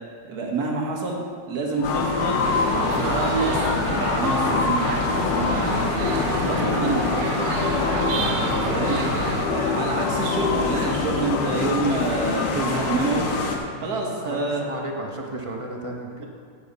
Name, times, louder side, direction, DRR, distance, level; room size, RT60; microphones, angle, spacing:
voice 1, 0.2-2.5 2.8-5.9 6.4-7.1 8.4-9.0 9.5-13.3 13.8-14.7 16.2-16.3, right 3 dB, 60° right, 0 dB, 1.8 m, -28 dB
sound 1, 1.8-15.0, left 7 dB, 80° left, 1.2 m, -30 dB
sound 2, 1.8-13.6, left 3 dB, 60° left, 1.5 m, -26 dB
sound 3, 2.4-9.5, right 3 dB, 80° right, 1.6 m, -28 dB
voice 2, 6.9-7.3 8.1-8.3 14.2-16.2, right 2 dB, 30° right, 0 dB, 0.6 m, -34 dB
10.0 x 9.2 x 4.1 m, 2.1 s
omnidirectional pair, 1.9 m